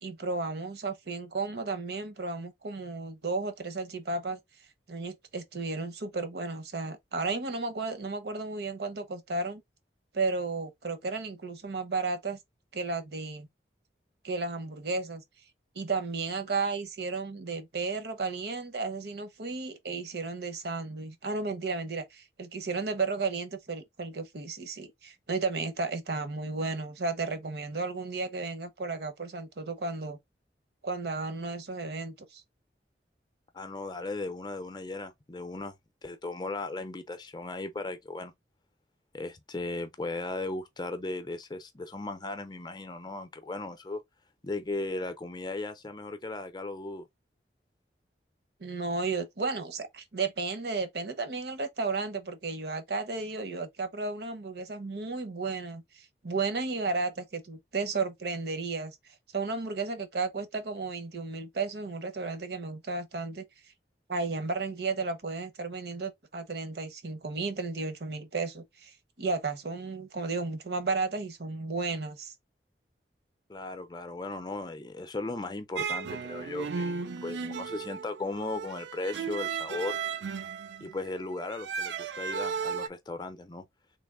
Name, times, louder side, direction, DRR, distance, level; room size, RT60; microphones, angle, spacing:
voice 1, 0.0-4.4 4.9-9.6 10.1-12.4 12.7-13.5 14.2-15.2 15.7-30.2 30.8-32.4 48.6-59.0 59.3-63.4 64.1-72.3, right 3 dB, 70° right, 0.8 m, -33 dB
voice 2, 33.5-35.8 36.0-38.3 39.1-44.0 44.4-47.1 73.5-80.0 80.8-83.7, left 2 dB, 25° left, 0.5 m, -37 dB
sound 1, 75.8-82.9, right 6 dB, 85° right, 0.4 m, -35 dB
3.3 x 3.0 x 3.6 m
head